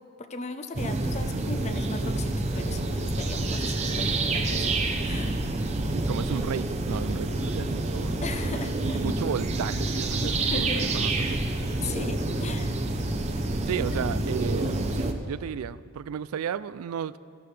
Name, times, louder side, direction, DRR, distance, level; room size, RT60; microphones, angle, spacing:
voice 1, 0.2-5.4 8.2-9.0 10.2-10.8 11.8-12.8 13.8-13.9, left 3 dB, 30° left, 8 dB, 0.6 m, -38 dB
sound 1, 0.8-15.1, right 2 dB, 30° right, 0.7 m, -28 dB
voice 2, 5.9-8.1 8.8-11.3 13.7-17.2, right 8 dB, 80° right, 16 dB, 0.3 m, -33 dB
15.5 x 12.5 x 3.3 m, 2.5 s
head